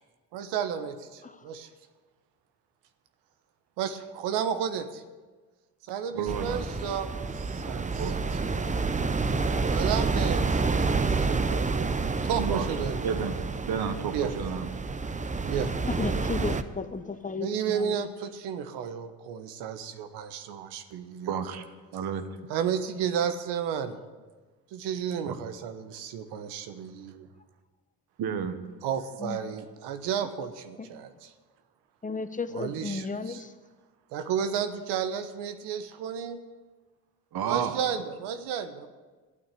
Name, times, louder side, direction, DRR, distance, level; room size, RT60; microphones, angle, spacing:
voice 1, 0.3-1.7 3.8-5.0 5.9-8.1 9.7-13.1 14.1-14.3 15.4-15.7 17.4-21.5 22.5-24.0 24.7-27.3 28.8-31.3 32.5-33.4 34.1-36.4 37.4-38.9, right 8 dB, 80° right, 9 dB, 1.2 m, -32 dB
voice 2, 6.1-6.6 8.0-8.2 12.4-12.6 13.0-13.4 13.6-14.7 21.3-21.6 21.9-22.3 25.2-25.3 28.2-28.6 37.3-37.8, right 7 dB, 60° right, 10 dB, 1.5 m, -31 dB
sound 1, 6.3-16.6, right 4 dB, 20° right, 0.8 m, -28 dB
voice 3, 15.9-18.1 29.2-29.4 30.8-30.9 32.0-33.5, left 4 dB, 20° left, 11 dB, 1.0 m, -34 dB
12.0 x 9.0 x 8.4 m, 1.3 s
supercardioid pair, 70°, 42 cm